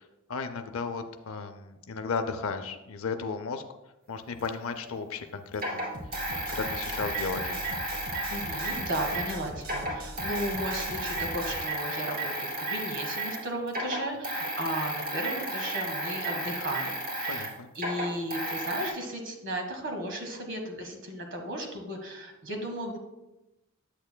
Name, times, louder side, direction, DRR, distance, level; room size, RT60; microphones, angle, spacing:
voice 1, 0.0-3.6 4.1-5.9 6.4-7.7 17.3-17.7, left 4 dB, 75° left, 8 dB, 0.5 m, -35 dB
sound 1, 4.4-4.5 5.5-9.4 9.6-13.4 13.7-18.9, right 1 dB, 40° right, 2.6 m, -33 dB
sound 2, 5.9-11.6, equal, 75° right, 1.4 m, -42 dB
voice 2, 8.3-23.0, right 1 dB, 55° right, 3 dB, 1.4 m, -35 dB
8.8 x 7.9 x 2.2 m, 0.98 s
head